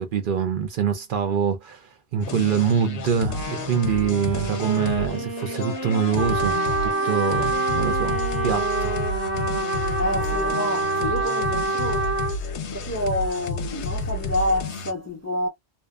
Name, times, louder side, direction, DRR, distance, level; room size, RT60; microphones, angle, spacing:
voice 1, 0.0-9.0, right 7 dB, 60° right, 0.7 m, -25 dB
sound 1, 2.2-14.9, left 2 dB, 85° left, 0.9 m, -31 dB
Wind instrument woodwind instrument, 3.2-11.2, right 2 dB, 20° right, 0.7 m, -34 dB
Trumpet, 6.2-12.4, right 2 dB, 75° right, 1.2 m, -26 dB
voice 2, 10.0-12.1 12.7-15.5, left 1 dB, 25° left, 0.3 m, -28 dB
2.7 x 2.1 x 2.3 m
omnidirectional pair, 1.1 m